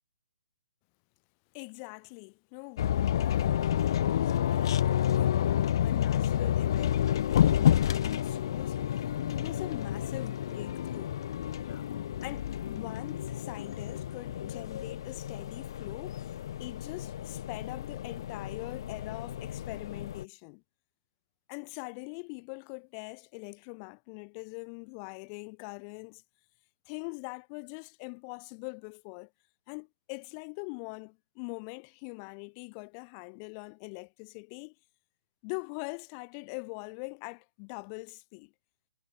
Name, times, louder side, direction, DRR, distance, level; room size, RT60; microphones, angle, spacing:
voice 1, 1.5-4.9 5.2-11.2 11.6-11.8 12.2-20.6 21.5-26.2 26.9-29.3 29.7-34.8 35.4-38.5, left 40 dB or more, 25° left, 5.2 m, -43 dB
sound 1, 2.8-20.2, left 10 dB, 45° left, 2.8 m, -30 dB
hypercardioid pair, 145°, 3 cm